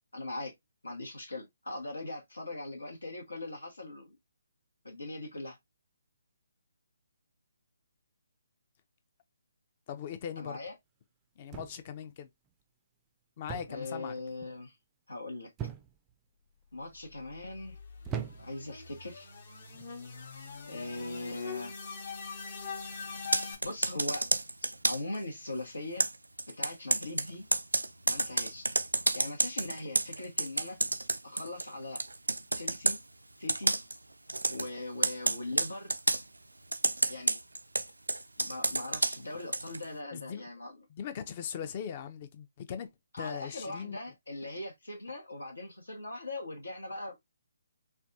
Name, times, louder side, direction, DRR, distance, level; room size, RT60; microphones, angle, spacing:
voice 1, 0.1-0.5 0.8-4.2 4.8-5.6 10.4-10.7 13.7-14.8 15.1-15.5 16.7-17.8 18.4-19.3 20.7-21.8 23.6-24.2 24.9-26.1 26.5-27.4 28.1-28.7 29.1-30.8 31.2-32.0 32.5-33.0 33.4-33.7 34.5-35.9 37.1-37.4 38.4-40.8 43.1-47.2, left 2 dB, 85° left, 0.9 m, -40 dB
voice 2, 9.9-10.6 11.4-12.3 13.4-14.2 40.1-40.4 40.9-42.9 43.2-44.0, left 8 dB, 35° left, 0.5 m, -40 dB
sound 1, 11.5-12.0 13.5-13.9 14.2-14.6 15.6-16.1 16.8-17.2 18.0-18.7 19.6-19.9, right 8 dB, 15° right, 0.4 m, -40 dB
sound 2, 17.2-23.6, left 5 dB, 55° left, 1.0 m, -43 dB
Computer keyboard, 23.2-25.2 26.0-31.7 32.0-33.0 33.5-34.0 34.3-34.7 35.0-36.2 36.7-39.8, right 2 dB, 90° right, 0.4 m, -30 dB
3.3 x 2.3 x 2.6 m
figure-of-eight pair, 140°, 0 cm